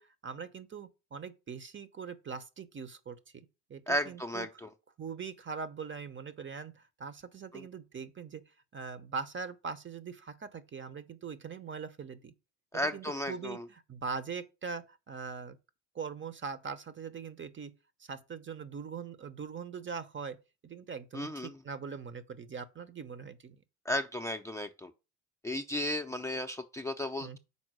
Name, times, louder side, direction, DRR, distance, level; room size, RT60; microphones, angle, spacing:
voice 1, 0.0-4.6 5.0-8.4 8.7-12.3 12.7-15.6 15.9-17.7 18.1-23.6 27.2-27.4, right 5 dB, 30° right, 0.9 m, -42 dB
voice 2, 3.9-4.7 7.5-7.6 12.7-13.6 21.1-21.5 23.9-24.9 25.4-27.4, equal, 5° left, 0.6 m, -34 dB
5.5 x 4.4 x 6.2 m
hypercardioid pair, 65°, 41 cm